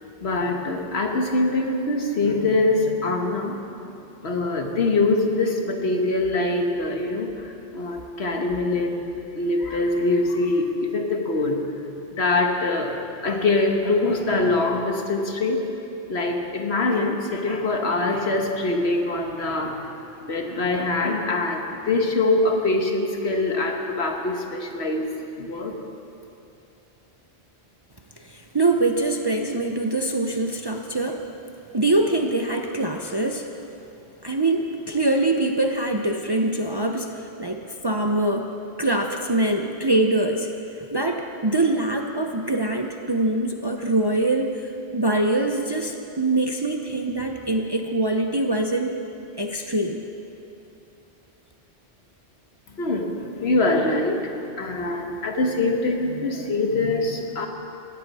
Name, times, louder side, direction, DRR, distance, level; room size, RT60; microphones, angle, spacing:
voice 1, 0.2-3.6 4.2-11.6 12.1-15.7 16.1-25.1 25.4-25.8 52.7-57.5, left 2 dB, 70° left, 3 dB, 1.6 m, -24 dB
voice 2, 28.2-31.2 31.7-33.5 34.2-38.5 38.8-40.5 40.9-49.0 49.4-50.0, right 2 dB, 25° right, 3 dB, 0.6 m, -24 dB
19.0 x 14.0 x 4.2 m, 2.8 s
omnidirectional pair, 1.1 m